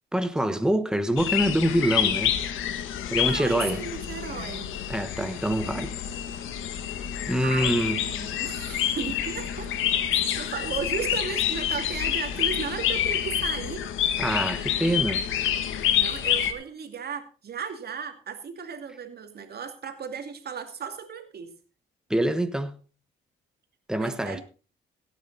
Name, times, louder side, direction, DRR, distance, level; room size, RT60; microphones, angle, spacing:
voice 1, 0.1-2.4 3.1-3.8 4.9-5.9 7.3-8.0 14.2-15.2 22.1-22.7 23.9-24.4, right 1 dB, 5° right, 1.2 m, -25 dB
sound 1, 1.2-16.5, left 10 dB, 85° left, 1.5 m, -28 dB
voice 2, 3.0-4.7 7.4-9.7 10.1-13.9 15.7-21.5 24.0-24.4, right 6 dB, 55° right, 2.5 m, -35 dB
16.5 x 9.4 x 4.1 m
cardioid pair, 90°, 20 cm